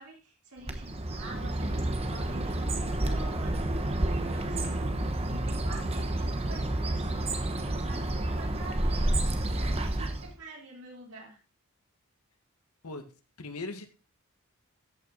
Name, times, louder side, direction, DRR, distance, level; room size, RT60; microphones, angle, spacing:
voice 1, 0.0-9.1 9.9-11.4, right 2 dB, 90° right, -2 dB, 4.2 m, -48 dB
Bird, 0.6-10.4, right 1 dB, 25° right, 1.1 m, -30 dB
voice 2, 13.4-14.0, left 3 dB, 85° left, 7 dB, 1.7 m, -39 dB
14.0 x 5.9 x 3.9 m, 0.32 s
head